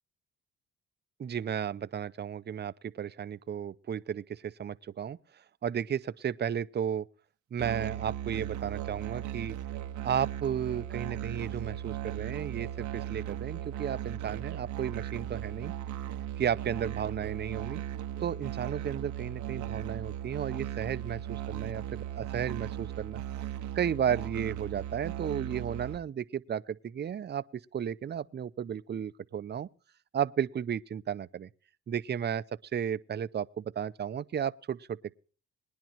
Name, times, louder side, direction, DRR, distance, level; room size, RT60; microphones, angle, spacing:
voice 1, 1.2-5.2 5.6-7.1 7.5-9.6 10.0-15.7 16.4-17.8 18.2-23.2 23.7-29.7 30.1-31.5 31.9-32.4 32.7-35.1, right 8 dB, 35° right, 0.6 m, -33 dB
Musical instrument, 7.6-26.0, right 12 dB, 70° right, 0.8 m, -37 dB
20.5 x 10.5 x 3.0 m
cardioid pair, 90°, 30 cm